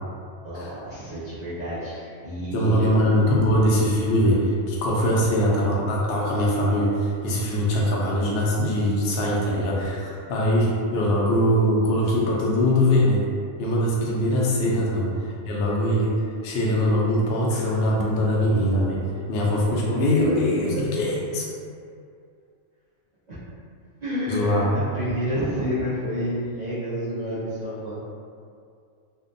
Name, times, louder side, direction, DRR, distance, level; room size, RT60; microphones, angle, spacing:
voice 1, 0.4-2.9 3.3-3.6 5.2-5.3 14.7-14.9 19.0-19.2 20.2-20.4 20.7-20.8 23.3-23.4 24.0-28.0, equal, 75° right, -12 dB, 0.4 m, -30 dB
voice 2, 2.5-13.2 13.6-16.1 16.4-19.0 19.3-21.4 24.3-24.7, equal, 65° left, -4 dB, 0.6 m, -22 dB
2.5 x 2.2 x 2.5 m, 2.3 s
omnidirectional pair, 1.4 m